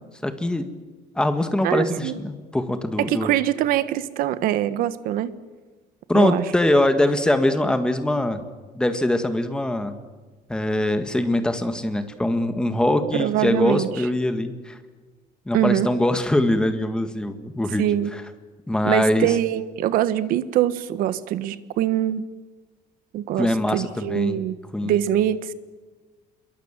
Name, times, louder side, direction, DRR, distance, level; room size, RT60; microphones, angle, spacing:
voice 1, 0.2-0.7 1.2-3.3 6.1-8.4 8.7-10.0 10.5-14.8 15.5-17.9 18.7-19.3 23.4-24.4 24.7-24.9, left 1 dB, 5° left, 8 dB, 1.9 m, -22 dB
voice 2, 1.6-2.2 3.0-5.3 6.1-6.5 13.1-14.1 15.5-15.9 17.8-18.1 18.8-22.3 23.1-24.6 24.8-25.5, right 12 dB, 70° right, 14 dB, 1.4 m, -23 dB
27.0 x 22.5 x 7.5 m, 1.3 s
cardioid pair, 165°, 15 cm